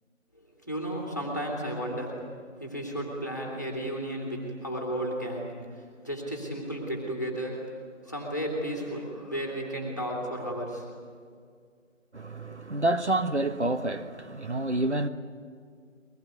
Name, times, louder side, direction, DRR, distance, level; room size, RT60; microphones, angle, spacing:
voice 1, 0.3-2.2 2.6-7.7 8.0-10.9, equal, 15° left, 2.2 m, -33 dB
voice 2, 12.1-15.1, right 2 dB, 60° right, 1.4 m, -28 dB
23.0 x 20.0 x 9.5 m
figure-of-eight pair, 175°, 39 cm